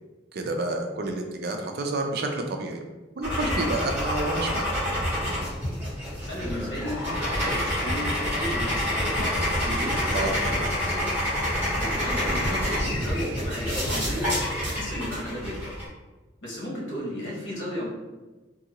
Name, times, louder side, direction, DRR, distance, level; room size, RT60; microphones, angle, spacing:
voice 1, 0.3-2.8 3.2-4.7 10.1-10.3, right 2 dB, 55° right, 3 dB, 0.4 m, -29 dB
sound 1, 3.2-15.8, left 1 dB, 10° right, 1.3 m, -27 dB
voice 2, 6.3-11.1 11.8-14.3 14.6-15.7 16.4-17.9, equal, 90° left, -5 dB, 1.2 m, -34 dB
2.7 x 2.6 x 2.9 m, 1.2 s
head